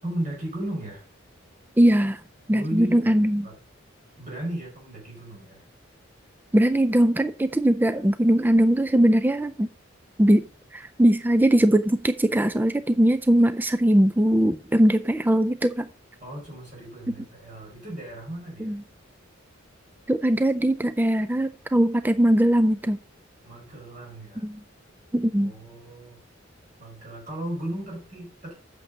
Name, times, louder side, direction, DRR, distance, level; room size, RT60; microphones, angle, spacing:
voice 1, 0.0-1.0 2.5-3.1 3.4-3.6 4.2-5.6 16.2-18.7 23.4-24.4 25.4-26.2 26.8-28.6, right 1 dB, 40° right, 5.0 m, -35 dB
voice 2, 1.8-2.2 2.5-3.5 6.5-9.7 10.2-10.4 10.7-15.9 18.6-18.8 20.1-23.0 24.4-24.6 25.1-25.5, right 1 dB, 10° right, 0.4 m, -20 dB
8.6 x 6.8 x 5.0 m
head